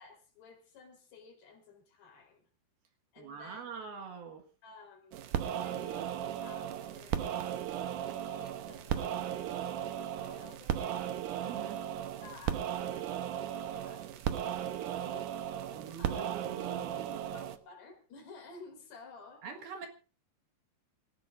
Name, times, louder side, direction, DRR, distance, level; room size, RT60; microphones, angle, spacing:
voice 1, 0.0-2.5 3.1-3.9 4.6-7.6 8.0-11.8 12.2-15.3 16.0-16.4 17.1-19.5, left 4 dB, 70° left, 2 dB, 5.9 m, -54 dB
voice 2, 3.2-4.4 7.7-7.8 11.4-11.8 15.7-17.4 19.4-19.9, right 6 dB, 65° right, 4 dB, 3.3 m, -44 dB
sound 1, 5.1-17.6, right 10 dB, 85° right, 1.8 m, -36 dB
26.5 x 15.5 x 2.6 m, 0.36 s
omnidirectional pair, 5.0 m